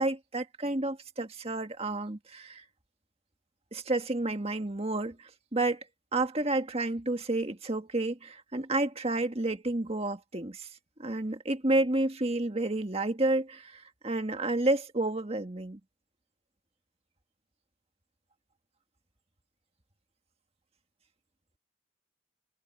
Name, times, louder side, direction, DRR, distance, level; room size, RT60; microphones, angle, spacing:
voice 1, 0.0-2.6 3.7-5.8 6.1-10.7 11.0-15.8, right 2 dB, 30° right, 1.7 m, -30 dB
head